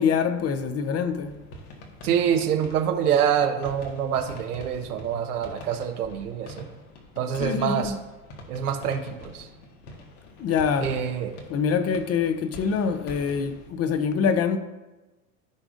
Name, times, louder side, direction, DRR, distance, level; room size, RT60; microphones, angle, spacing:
voice 1, 0.0-1.4 7.4-7.9 10.4-10.9 11.5-14.6, left 6 dB, 35° left, 0.7 m, -25 dB
sound 1, 1.1-13.7, left 1 dB, 85° left, 1.7 m, -45 dB
voice 2, 2.0-6.7 7.2-7.9 8.5-9.5 10.8-11.4, right 8 dB, 85° right, 1.1 m, -26 dB
14.5 x 4.9 x 2.6 m
hypercardioid pair, 100°, 44 cm